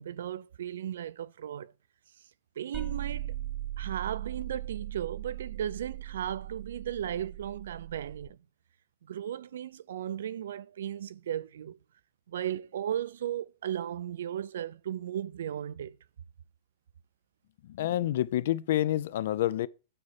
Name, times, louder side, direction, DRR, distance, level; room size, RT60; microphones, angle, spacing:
voice 1, 0.0-1.7 2.6-3.3 3.8-8.4 9.1-11.8 12.3-16.0, right 10 dB, 85° right, 0.4 m, -36 dB
sound 1, 2.7-8.3, right 13 dB, 5° right, 0.8 m, -39 dB
voice 2, 17.8-19.7, left 13 dB, 60° left, 0.4 m, -28 dB
8.9 x 4.2 x 6.4 m
supercardioid pair, 175°, 0 cm